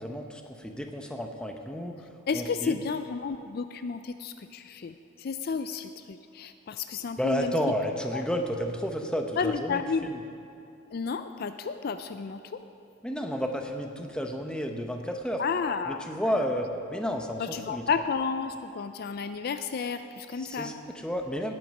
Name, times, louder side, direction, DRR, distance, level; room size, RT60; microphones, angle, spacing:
voice 1, 0.0-1.9 2.3-2.8 7.2-10.2 13.0-15.4 15.9-17.8 20.4-21.5, equal, 5° left, 3 dB, 0.8 m, -31 dB
voice 2, 2.3-7.8 8.1-8.2 9.4-10.1 10.9-12.6 15.4-16.5 17.4-20.7, left 5 dB, 50° left, 10 dB, 0.4 m, -32 dB
18.0 x 7.8 x 5.3 m, 2.5 s
head